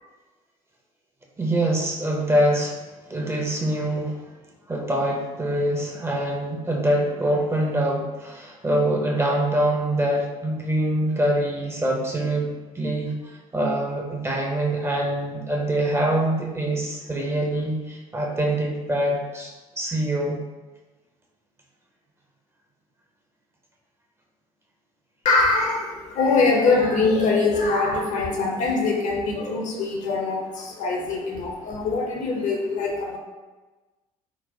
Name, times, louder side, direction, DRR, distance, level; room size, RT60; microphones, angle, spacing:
voice 1, 1.4-2.8 3.1-4.2 4.7-20.4, right 1 dB, 15° right, -1 dB, 0.5 m, -24 dB
voice 2, 25.2-33.2, left 3 dB, 40° left, 1 dB, 0.6 m, -23 dB
3.9 x 2.1 x 2.6 m, 1.2 s
figure-of-eight pair, 55°, 19 cm